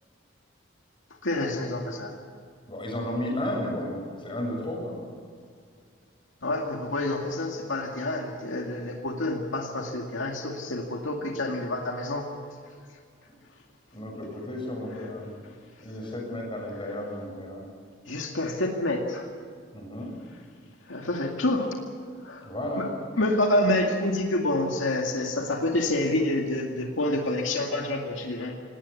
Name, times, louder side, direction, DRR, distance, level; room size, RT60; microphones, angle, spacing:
voice 1, 1.2-2.2 6.4-12.3 14.9-15.1 18.1-19.3 20.9-21.7 22.2-22.5 22.8-22.9 23.2-28.6, left 1 dB, 85° left, 1 dB, 2.2 m, -28 dB
voice 2, 2.7-3.9 4.2-5.0 13.9-15.3 15.8-17.6 19.7-20.1 22.4-22.9, left 1 dB, 25° left, 0 dB, 7.2 m, -33 dB
19.0 x 19.0 x 8.5 m, 2.1 s
head